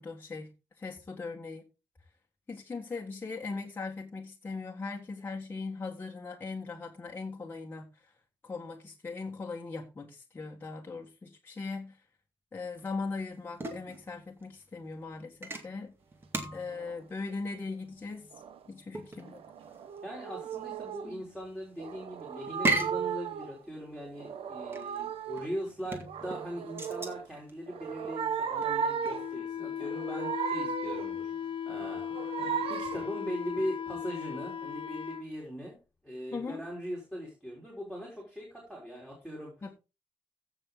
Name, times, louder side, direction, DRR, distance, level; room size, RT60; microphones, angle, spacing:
voice 1, 0.0-1.6 2.5-7.9 8.4-12.0 12.5-15.9 16.5-18.3 18.7-19.4 36.3-36.6 39.6-39.7, left 4 dB, 20° left, 1.6 m, -39 dB
sound 1, 12.8-29.3, right 2 dB, 25° right, 2.1 m, -39 dB
sound 2, 16.7-17.0 18.3-18.7 19.2-21.1 21.8-23.6 24.1-25.6 26.0-27.3 27.7-29.4 29.8-31.2 31.7-33.2, right 7 dB, 75° right, 1.0 m, -36 dB
voice 2, 20.0-32.1 32.7-35.8 36.0-39.5, equal, 5° right, 3.8 m, -40 dB
Wind instrument woodwind instrument, 29.1-35.3, left 8 dB, 65° left, 1.3 m, -37 dB
15.5 x 6.3 x 3.8 m
wide cardioid pair, 180°, 10 cm